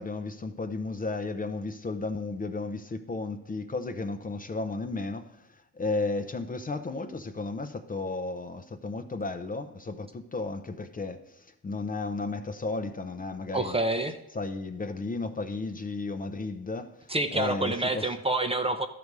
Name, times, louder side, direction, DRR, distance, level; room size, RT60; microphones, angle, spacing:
voice 1, 0.0-13.8 14.3-18.1, left 3 dB, 25° left, 0.6 m, -34 dB
voice 2, 13.5-14.2 17.1-18.9, right 2 dB, 15° right, 0.7 m, -27 dB
13.0 x 5.3 x 4.7 m
cardioid pair, 105°, 36 cm